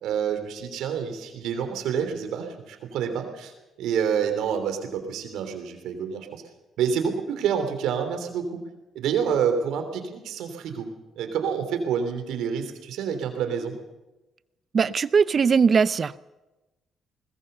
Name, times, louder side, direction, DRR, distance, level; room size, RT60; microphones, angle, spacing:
voice 1, 0.0-3.5 3.8-6.4 6.8-8.6 8.9-10.9 11.2-13.8, right 7 dB, 85° right, 7 dB, 3.2 m, -28 dB
voice 2, 14.7-16.2, right 6 dB, 45° right, 17 dB, 0.7 m, -20 dB
20.5 x 20.5 x 6.8 m, 1.1 s
cardioid pair, 90°, 0 cm